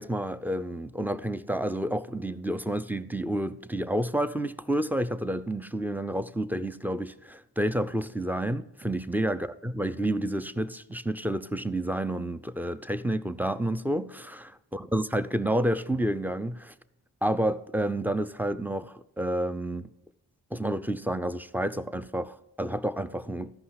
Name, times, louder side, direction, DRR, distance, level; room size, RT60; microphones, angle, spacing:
voice 1, 0.0-16.7 17.2-19.9 20.5-23.5, right 1 dB, 5° right, 0.5 m, -30 dB
13.5 x 5.5 x 5.7 m
cardioid pair, 65°, 45 cm